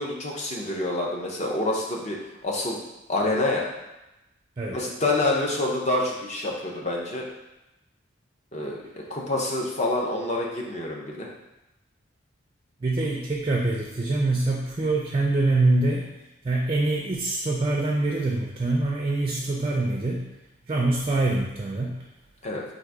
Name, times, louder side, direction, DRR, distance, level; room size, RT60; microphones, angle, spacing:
voice 1, 0.0-2.2 2.4-2.8 3.1-3.7 4.7-7.2 8.5-8.8 9.1-11.3 22.4-22.6, left 2 dB, 35° left, -1 dB, 0.6 m, -27 dB
voice 2, 12.8-16.1 16.4-20.3 20.7-22.0, right 2 dB, 25° right, -1 dB, 0.4 m, -24 dB
3.8 x 2.6 x 4.6 m, 0.96 s
head